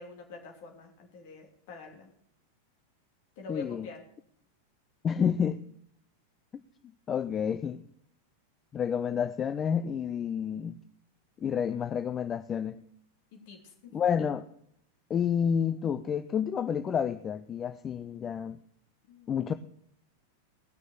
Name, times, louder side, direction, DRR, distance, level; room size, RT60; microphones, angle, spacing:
voice 1, 0.0-2.1 3.4-4.0 13.3-14.2 19.1-19.6, left 4 dB, 50° left, 3.0 m, -46 dB
voice 2, 3.5-3.9 5.0-5.6 7.1-7.8 8.7-10.8 11.4-12.8 13.9-14.4 15.1-18.6 19.3-19.5, left 7 dB, 25° left, 0.5 m, -29 dB
18.0 x 6.4 x 6.6 m
figure-of-eight pair, 90°, 0 cm